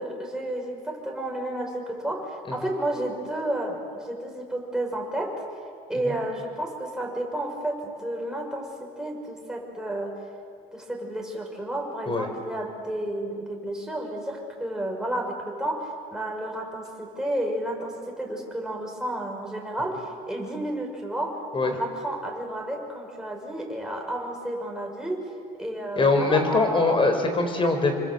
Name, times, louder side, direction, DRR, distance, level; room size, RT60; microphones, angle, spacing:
voice 1, 0.0-5.3 5.9-10.1 10.7-21.3 21.6-25.2 25.6-27.0, right 1 dB, 5° right, 0 dB, 6.5 m, -31 dB
voice 2, 26.0-27.9, left 3 dB, 30° left, 6 dB, 4.8 m, -22 dB
27.5 x 25.0 x 8.1 m, 2.2 s
cardioid pair, 110°, 17 cm